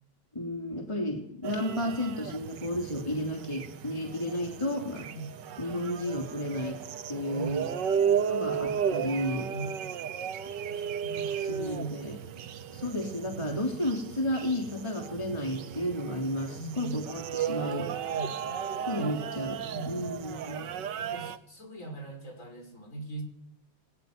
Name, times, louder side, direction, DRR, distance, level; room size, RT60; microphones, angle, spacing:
voice 1, 0.3-5.1 5.6-6.8 7.1-7.7 8.2-9.5 10.4-10.6 11.4-12.2 12.7-17.9 18.9-20.7, left 1 dB, 15° left, 1 dB, 3.1 m, -32 dB
sound 1, 1.4-21.4, right 8 dB, 60° right, 1.6 m, -34 dB
voice 2, 7.3-8.2 9.5-10.0 10.7-12.8 13.4-13.7 16.5-17.1 18.1-18.5 19.0-19.1 19.7-20.2 21.0-23.2, right 3 dB, 35° left, 5 dB, 5.6 m, -41 dB
21.5 x 18.5 x 9.7 m, 0.76 s
omnidirectional pair, 2.3 m